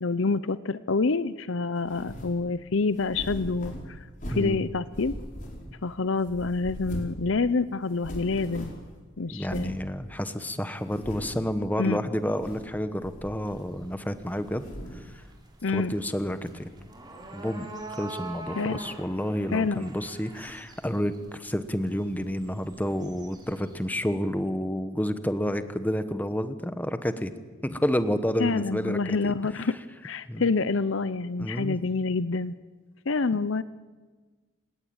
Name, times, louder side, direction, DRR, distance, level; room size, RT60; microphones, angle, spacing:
voice 1, 0.0-3.7 4.3-5.1 5.8-8.7 9.2-9.7 11.8-12.0 15.6-15.9 18.6-18.8 19.5-19.8 28.4-29.8 30.0-32.5 33.1-33.6, left 4 dB, 60° left, 16 dB, 0.7 m, -27 dB
sound 1, 1.8-2.4 2.9-4.6 4.9-5.9 6.2-7.2 7.5-7.6 7.9-8.9 9.4-9.8 10.3-10.4 10.8-11.5 12.2-12.7 13.0-13.9 14.2-15.1, equal, 40° left, 4.8 m, -40 dB
voice 2, 4.3-4.7 9.3-14.6 15.7-16.7 17.3-17.7 18.0-27.3 27.6-29.3 30.3-30.4 31.4-31.8, equal, 10° left, 10 dB, 1.1 m, -30 dB
sound 2, 13.5-23.9, right 2 dB, 20° right, 4.0 m, -45 dB
29.0 x 17.5 x 8.8 m, 1.4 s
head